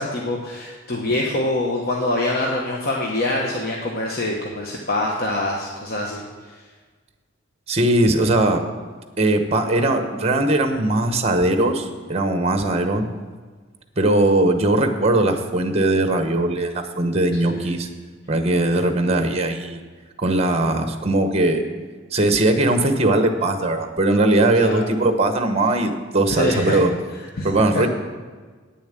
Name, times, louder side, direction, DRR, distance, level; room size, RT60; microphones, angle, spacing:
voice 1, 0.0-6.2 17.4-17.7 24.6-24.8 26.3-26.8 27.4-27.5 27.7-27.8, left 1 dB, 50° left, -1 dB, 1.1 m, -24 dB
voice 2, 7.7-8.6 9.2-13.1 14.0-17.9 18.3-19.8 20.2-21.6 22.1-26.9 27.4-27.9, right 2 dB, 30° right, 7 dB, 1.0 m, -20 dB
9.4 x 7.2 x 7.5 m, 1.4 s
head